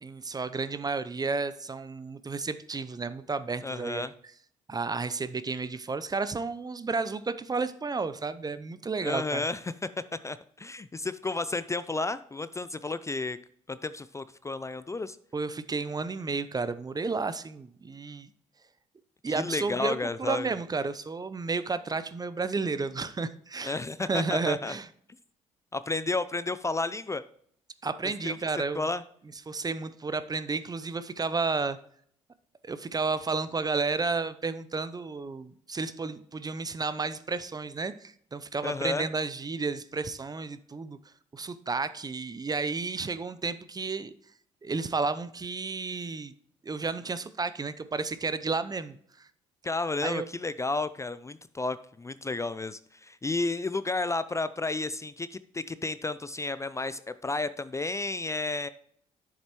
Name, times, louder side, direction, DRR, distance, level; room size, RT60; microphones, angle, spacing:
voice 1, 0.0-4.1 4.7-9.4 15.3-18.3 19.2-24.9 27.8-28.8 29.5-31.8 32.6-41.0 41.3-44.1 44.6-46.3 46.6-49.3 50.0-50.2, right 4 dB, 25° right, 13 dB, 0.6 m, -32 dB
voice 2, 3.6-4.1 9.0-9.7 10.2-13.4 13.7-15.2 19.3-20.5 23.6-24.8 25.7-27.2 28.2-29.0 38.6-39.1 49.6-58.7, left 3 dB, 20° left, 14 dB, 0.4 m, -32 dB
10.5 x 7.4 x 3.0 m, 0.64 s
hypercardioid pair, 50°, 15 cm